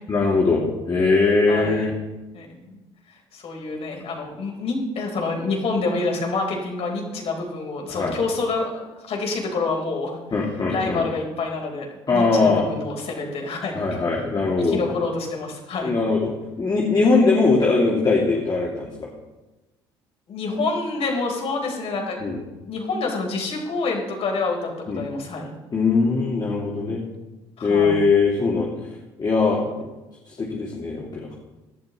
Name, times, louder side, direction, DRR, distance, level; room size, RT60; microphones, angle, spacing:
voice 1, 0.1-1.9 7.9-8.1 10.3-11.0 12.1-12.7 13.7-14.8 15.8-19.1 22.2-22.4 24.9-25.0 25.7-27.0 27.6-28.7 29.2-29.9 30.4-31.3, left 3 dB, 35° left, -3 dB, 2.6 m, -21 dB
voice 2, 1.5-1.9 2.3-2.8 3.1-10.2 10.7-13.7 14.6-15.9 20.3-22.2 22.4-24.7 25.0-25.5 26.9-27.0 27.6-28.0, left 3 dB, 55° left, 1 dB, 4.3 m, -27 dB
17.5 x 12.0 x 3.1 m, 1.1 s
hypercardioid pair, 60°, 13 cm